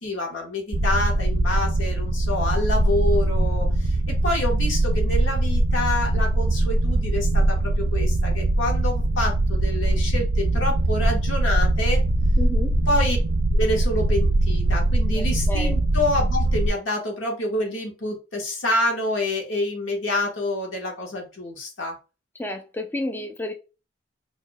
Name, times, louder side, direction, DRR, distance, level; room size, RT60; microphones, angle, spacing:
voice 1, 0.0-12.0 12.9-13.2 13.5-22.0, left 1 dB, 85° left, 1.4 m, -27 dB
sound 1, 0.7-16.7, right 1 dB, 85° right, 0.5 m, -21 dB
voice 2, 12.4-12.7 15.5-15.7 22.4-23.5, left 1 dB, 10° left, 0.4 m, -30 dB
4.4 x 2.7 x 2.3 m
head